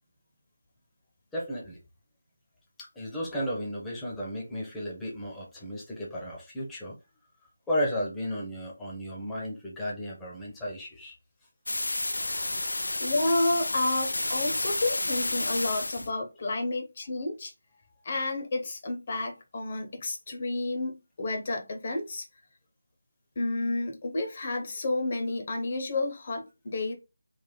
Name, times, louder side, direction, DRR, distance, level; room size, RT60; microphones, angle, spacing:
voice 1, 1.3-1.8 2.8-7.0 7.4-11.2 12.0-12.6, equal, 5° left, 0.9 m, -34 dB
sound 1, 11.7-16.1, left 2 dB, 90° left, 0.3 m, -30 dB
voice 2, 13.0-17.5 18.0-22.2 23.4-26.9, left 2 dB, 35° left, 0.9 m, -30 dB
3.4 x 2.4 x 3.8 m
figure-of-eight pair, 170°, 0 cm